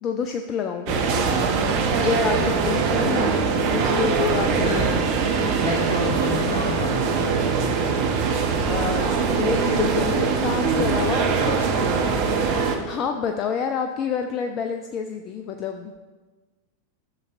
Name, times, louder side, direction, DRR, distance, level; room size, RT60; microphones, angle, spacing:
voice 1, 0.0-1.5 2.0-3.4 3.7-5.1 8.6-15.9, left 6 dB, 30° left, 5 dB, 0.5 m, -28 dB
sound 1, 0.9-12.8, right 5 dB, 45° right, 1.0 m, -22 dB
voice 2, 5.6-7.3, left 2 dB, 55° left, -2 dB, 2.3 m, -29 dB
12.0 x 7.1 x 2.6 m, 1.3 s
figure-of-eight pair, 90°, 0 cm